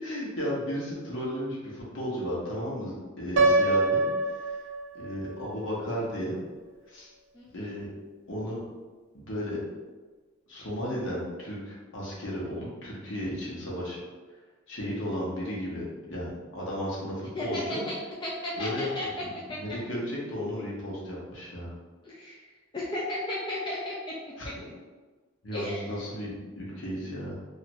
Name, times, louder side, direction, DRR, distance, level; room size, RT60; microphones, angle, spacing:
voice 1, 0.0-4.1 4.5-4.6 4.9-6.4 6.9-7.1 7.5-7.9 8.3-8.6 9.1-9.6 10.5-14.0 14.7-17.8 18.6-18.9 19.2-21.7 24.4-24.5 25.4-27.4, equal, 65° left, -5 dB, 0.9 m, -34 dB
Piano, 3.4-5.3, right 2 dB, 60° right, 0.4 m, -24 dB
voice 2, 17.3-18.0 18.2-19.1 19.5-19.6 22.0-22.4 22.7-23.9 25.5-25.9, left 1 dB, 20° left, -6 dB, 0.3 m, -34 dB
2.6 x 2.4 x 2.9 m, 1.3 s
head